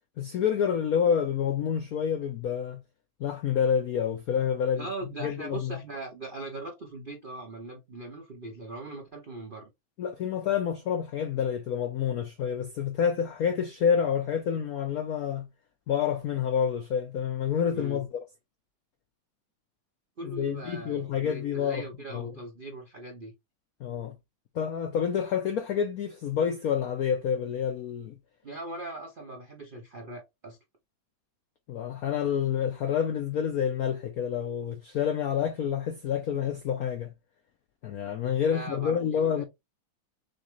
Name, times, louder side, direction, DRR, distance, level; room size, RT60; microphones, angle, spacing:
voice 1, 0.2-2.8 3.2-4.9 5.2-5.7 10.0-15.5 15.9-18.1 20.2-21.8 22.1-22.4 23.8-24.1 24.5-28.1 31.7-37.1 37.8-39.4, left 8 dB, 80° left, 0.8 m, -28 dB
voice 2, 4.8-9.7 17.7-18.0 20.2-23.3 28.4-30.6 38.5-39.4, right 2 dB, 70° right, 0.5 m, -40 dB
6.4 x 2.3 x 3.1 m
omnidirectional pair, 2.3 m